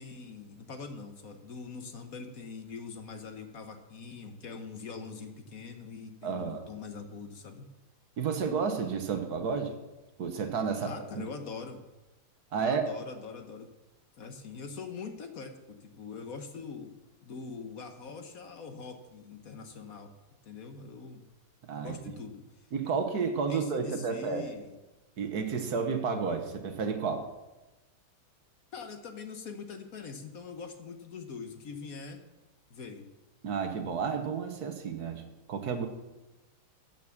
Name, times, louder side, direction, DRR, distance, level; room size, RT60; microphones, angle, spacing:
voice 1, 0.0-7.7 10.8-11.8 12.6-13.7 14.2-17.0 17.2-20.1 20.4-21.3 21.8-22.5 23.5-24.8 28.7-32.2 32.7-33.1, left 5 dB, 55° left, 6 dB, 1.1 m, -43 dB
voice 2, 6.2-6.6 8.2-9.8 10.2-11.2 12.5-12.9 21.7-21.9 22.7-24.5 25.2-27.3 33.4-35.2 35.5-35.9, right 5 dB, 55° right, 7 dB, 1.3 m, -31 dB
13.0 x 6.0 x 7.1 m, 1.1 s
omnidirectional pair, 2.3 m